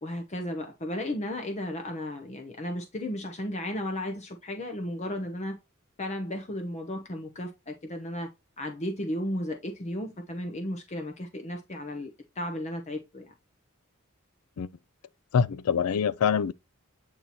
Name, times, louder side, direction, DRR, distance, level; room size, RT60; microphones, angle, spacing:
voice 1, 0.0-5.6 6.0-8.3 8.6-12.1 12.4-13.3, left 1 dB, 30° left, 0.9 m, -34 dB
voice 2, 15.3-16.5, left 6 dB, 85° left, 0.4 m, -25 dB
8.7 x 3.0 x 4.1 m
head